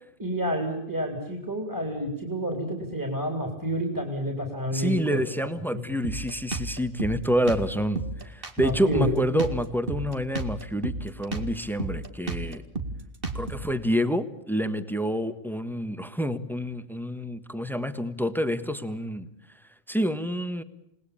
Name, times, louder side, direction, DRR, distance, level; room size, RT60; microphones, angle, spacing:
voice 1, 0.2-5.2 5.7-5.9 8.6-9.4, equal, 15° right, 3 dB, 3.8 m, -29 dB
voice 2, 4.7-12.6 13.3-19.3 19.9-20.6, equal, ahead, 11 dB, 1.3 m, -28 dB
Drum kit, 6.0-13.7, right 3 dB, 45° right, 2.4 m, -33 dB
28.5 x 19.5 x 8.7 m, 0.81 s
omnidirectional pair, 1.3 m